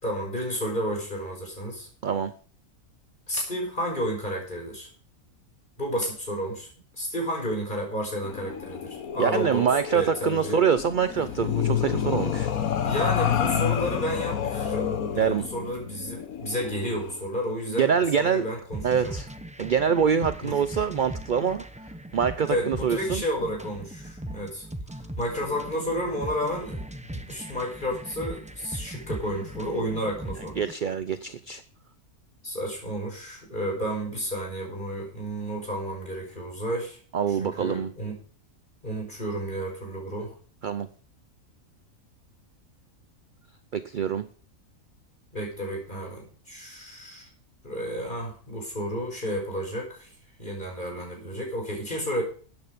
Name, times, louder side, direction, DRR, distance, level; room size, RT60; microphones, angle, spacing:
voice 1, 0.0-1.9 3.3-4.9 5.8-6.7 7.0-9.6 9.9-10.6 12.8-19.1 20.4-20.5 22.5-24.7 25.0-26.8 27.1-30.6 32.4-37.0 37.4-38.2 38.8-40.3 45.3-47.3 47.6-50.1 50.4-52.2, equal, 35° left, 0 dB, 5.4 m, -31 dB
sound 1, 8.2-17.2, left 9 dB, 75° left, 1.5 m, -29 dB
voice 2, 9.2-12.5 15.2-15.5 17.8-18.5 18.8-19.3 19.6-21.6 22.1-23.2 30.6-31.6 37.1-37.9 40.6-40.9 43.7-44.3, right 7 dB, 50° right, 12 dB, 0.6 m, -25 dB
sound 2, 18.7-30.7, right 1 dB, 5° right, 0.6 m, -39 dB
13.5 x 9.2 x 5.2 m, 0.41 s
omnidirectional pair, 1.5 m